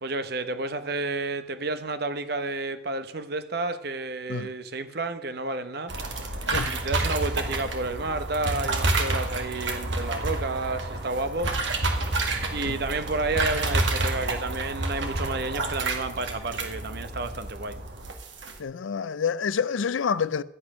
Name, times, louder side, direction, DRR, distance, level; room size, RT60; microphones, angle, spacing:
voice 1, 0.0-5.9 6.6-11.6 12.5-17.8, right 3 dB, 55° right, 0.9 m, -31 dB
sound 1, 5.9-18.6, right 2 dB, 75° right, 2.0 m, -29 dB
voice 2, 18.6-20.4, left 6 dB, 90° left, 0.5 m, -27 dB
12.5 x 8.7 x 6.1 m
head